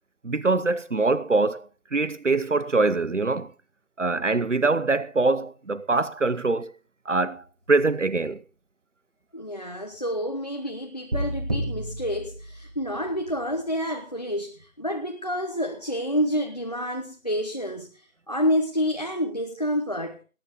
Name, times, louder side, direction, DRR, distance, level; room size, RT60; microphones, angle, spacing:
voice 1, 0.2-3.5 4.0-6.7 7.1-8.4, right 3 dB, 55° right, 1.0 m, -24 dB
voice 2, 9.3-20.2, equal, 25° left, 1.0 m, -28 dB
sound 1, 11.1-13.2, right 1 dB, 30° right, 2.0 m, -31 dB
20.5 x 9.8 x 3.7 m
figure-of-eight pair, 170°, 44 cm